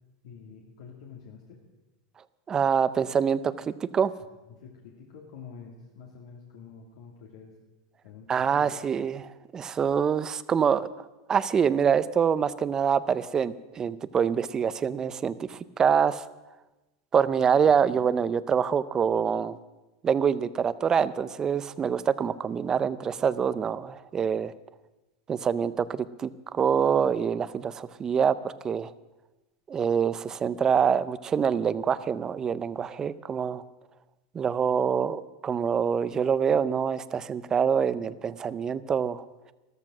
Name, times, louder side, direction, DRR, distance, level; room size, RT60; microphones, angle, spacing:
voice 1, 0.2-1.6 4.5-7.5 8.0-8.7 17.8-17.9, left 6 dB, 75° left, -1 dB, 2.3 m, -47 dB
voice 2, 2.5-4.1 8.3-10.9 11.3-16.3 17.1-19.6 20.0-24.5 25.3-28.9 29.7-33.6 34.3-39.2, right 7 dB, 20° right, 16 dB, 0.6 m, -25 dB
13.5 x 13.0 x 6.1 m, 1.1 s
supercardioid pair, 135°, 3 cm